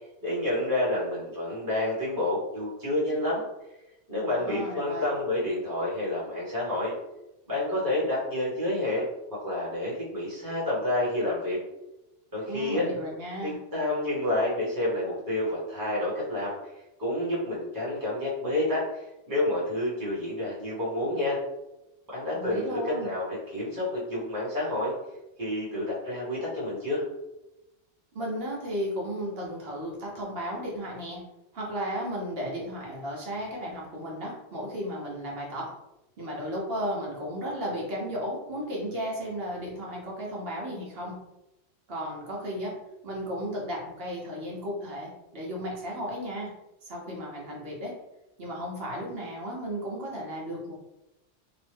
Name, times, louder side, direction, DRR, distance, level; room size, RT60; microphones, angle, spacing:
voice 1, 0.2-3.4 4.1-6.9 7.5-11.6 12.3-12.9 13.4-16.5 17.0-21.4 22.1-24.9 25.4-27.0, left 1 dB, 15° right, -8 dB, 1.2 m, -29 dB
voice 2, 4.4-5.1 12.5-13.6 22.3-23.1 28.1-31.2 31.5-35.7 36.2-41.2 41.9-42.8 43.0-46.5 46.8-48.0 48.4-50.8, equal, 55° right, -3 dB, 1.1 m, -34 dB
3.1 x 2.1 x 3.3 m, 0.93 s
omnidirectional pair, 1.2 m